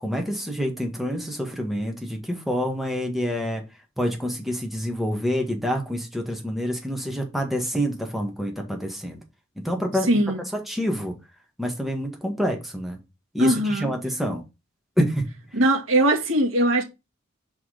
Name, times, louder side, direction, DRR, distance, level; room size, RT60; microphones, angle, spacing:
voice 1, 0.0-3.6 4.0-9.2 9.6-10.1 10.7-11.1 11.6-13.0 13.3-13.5 13.8-14.4 15.0-15.3, equal, ahead, 1.6 m, -27 dB
voice 2, 9.9-10.5 13.4-13.9 15.5-16.8, right 1 dB, 75° right, 1.9 m, -21 dB
5.6 x 4.2 x 5.0 m
head